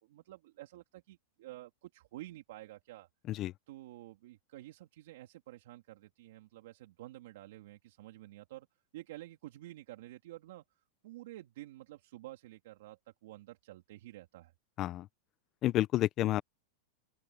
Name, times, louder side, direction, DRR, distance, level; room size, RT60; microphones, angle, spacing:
voice 1, 0.0-3.1 3.7-8.7 8.9-10.6 11.0-14.5, right 16 dB, 65° right, 3.3 m, -50 dB
voice 2, 15.6-16.4, left 14 dB, 30° left, 0.5 m, -30 dB
open air
supercardioid pair, 160°, 0 cm